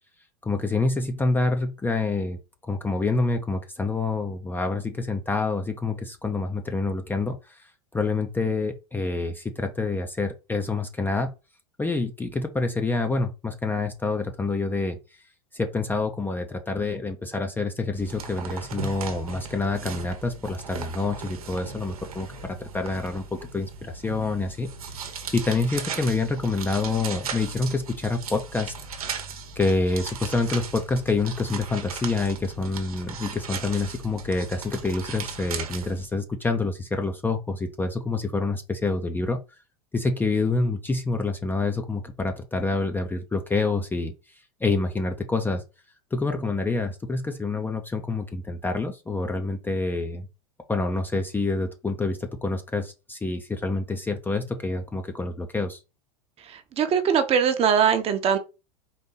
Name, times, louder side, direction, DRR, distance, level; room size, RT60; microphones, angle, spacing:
voice 1, 0.4-2.4 2.6-11.3 11.8-15.0 15.5-28.7 29.6-39.4 39.9-45.6 46.1-50.3 50.7-55.8, left 3 dB, 10° left, 0.5 m, -27 dB
sound 1, 18.0-36.1, right 5 dB, 90° right, 0.9 m, -37 dB
voice 2, 56.5-58.4, right 7 dB, 35° right, 0.8 m, -21 dB
4.1 x 2.6 x 3.8 m
hypercardioid pair, 105°, 18 cm